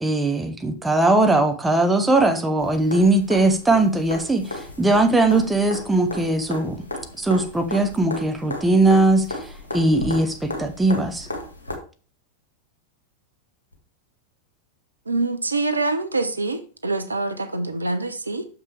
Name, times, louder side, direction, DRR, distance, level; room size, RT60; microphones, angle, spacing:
voice 1, 0.0-6.8 7.2-11.3, right 2 dB, 10° right, 1.0 m, -20 dB
sound 1, 2.6-11.7 13.7-13.8, left 2 dB, 75° left, 2.0 m, -35 dB
voice 2, 15.1-18.4, right 3 dB, 80° right, 0.7 m, -25 dB
6.6 x 6.0 x 4.7 m
figure-of-eight pair, 90°, 0 cm